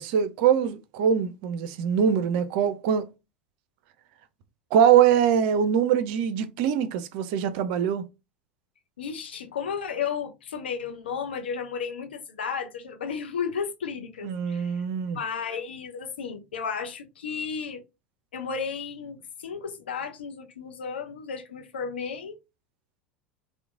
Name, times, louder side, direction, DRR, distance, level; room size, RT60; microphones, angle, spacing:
voice 1, 0.0-3.1 4.7-8.0 14.2-15.2, right 8 dB, 60° right, 0.4 m, -23 dB
voice 2, 9.0-14.8 15.1-17.8 18.3-22.4, left 6 dB, 80° left, 0.5 m, -33 dB
2.9 x 2.1 x 2.4 m
hypercardioid pair, 80°, 6 cm